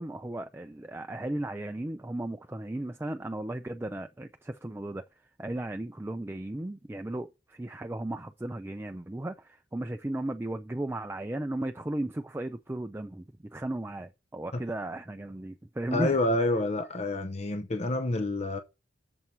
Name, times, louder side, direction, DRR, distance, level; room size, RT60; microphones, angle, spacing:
voice 1, 0.0-5.0 5.4-13.3 13.5-16.2, right 1 dB, 15° right, 0.4 m, -35 dB
voice 2, 15.9-18.6, left 2 dB, 35° left, 0.7 m, -28 dB
7.1 x 4.6 x 6.7 m
head